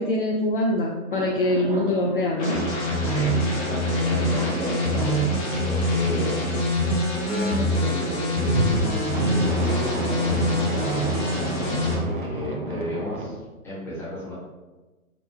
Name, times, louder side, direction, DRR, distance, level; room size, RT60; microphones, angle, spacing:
voice 1, 0.0-2.6 4.4-4.9, left 1 dB, 40° left, -1 dB, 0.4 m, -24 dB
sound 1, 1.1-7.5 8.5-13.4, right 2 dB, 40° right, 0.4 m, -32 dB
sound 2, 2.4-12.0, left 1 dB, 25° left, 0.9 m, -24 dB
voice 2, 3.0-5.4 5.7-6.4 7.2-13.4 13.6-14.3, left 1 dB, 5° left, -8 dB, 1.0 m, -34 dB
4.8 x 2.1 x 3.4 m, 1.2 s
figure-of-eight pair, 125°, 43 cm